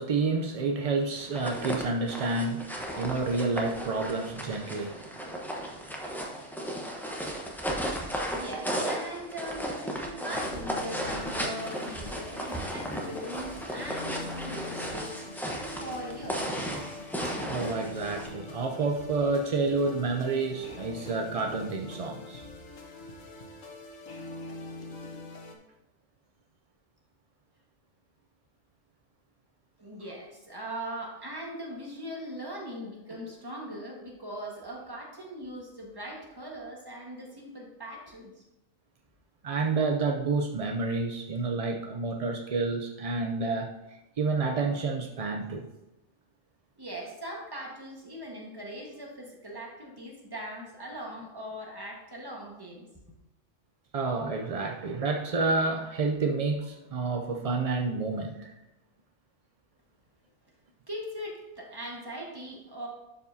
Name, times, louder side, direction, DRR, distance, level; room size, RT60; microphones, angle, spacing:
voice 1, 0.0-6.4 8.8-8.9 17.4-22.4 39.4-43.7 44.2-45.7 53.9-58.5, right 3 dB, 60° right, 2 dB, 0.3 m, -29 dB
sound 1, 1.2-18.3, equal, ahead, 0.8 m, -35 dB
voice 2, 8.3-15.1 15.8-16.5 29.8-38.4 46.8-52.9 60.9-62.9, equal, 20° right, -1 dB, 1.4 m, -40 dB
sound 2, 9.6-25.5, left 2 dB, 80° left, 1.4 m, -43 dB
11.5 x 5.1 x 2.7 m, 0.97 s
omnidirectional pair, 1.3 m